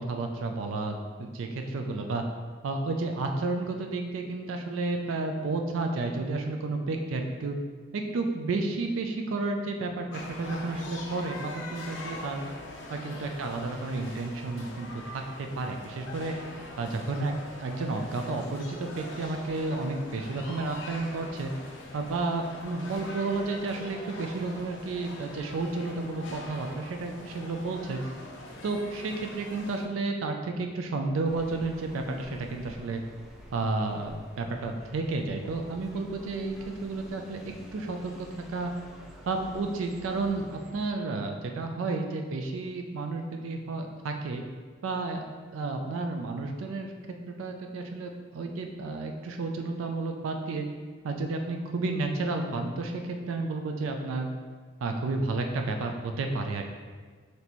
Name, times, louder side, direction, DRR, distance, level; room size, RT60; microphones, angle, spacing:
voice 1, 0.0-2.2 2.6-7.6 7.9-12.5 12.9-16.3 16.8-17.3 17.6-21.5 21.9-28.0 28.6-33.0 33.5-36.5 36.8-37.4 37.7-38.3 38.5-38.7 39.3-44.4 44.8-45.2 45.5-46.9 47.3-50.7 51.0-54.3 54.8-56.6, right 3 dB, 85° right, 4 dB, 0.4 m, -31 dB
sound 1, 10.1-29.9, left 2 dB, 70° left, 0.6 m, -43 dB
sound 2, 31.2-40.7, equal, ahead, 0.4 m, -49 dB
4.1 x 3.3 x 2.9 m, 1.5 s
head